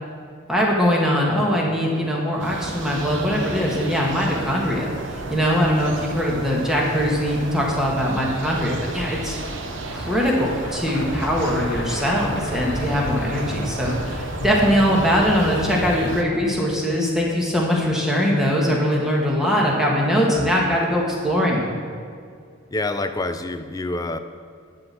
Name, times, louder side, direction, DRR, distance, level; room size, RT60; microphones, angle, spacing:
voice 1, 0.5-9.4 9.9-21.6, equal, 5° right, -4 dB, 1.6 m, -21 dB
sound 1, 2.4-16.2, right 3 dB, 65° right, 0.8 m, -33 dB
sound 2, 9.1-17.0, left 1 dB, 55° left, 1.0 m, -33 dB
voice 2, 22.7-24.2, left 2 dB, 20° left, 10 dB, 0.4 m, -26 dB
12.0 x 4.3 x 7.6 m, 2.2 s
head